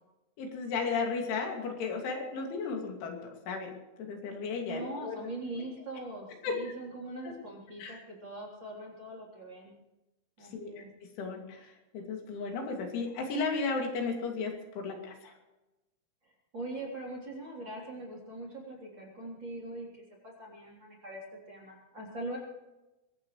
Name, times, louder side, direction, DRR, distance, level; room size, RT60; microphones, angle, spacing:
voice 1, 0.4-3.2 3.5-3.7 4.0-5.2 6.4-6.7 7.2-7.3 7.8-8.0 10.5-15.3, left 4 dB, 75° left, 2 dB, 5.0 m, -34 dB
voice 2, 4.6-9.7 10.4-10.9 16.2-22.4, right 1 dB, 25° right, -3 dB, 3.7 m, -42 dB
23.0 x 17.0 x 3.3 m, 1.0 s
omnidirectional pair, 5.5 m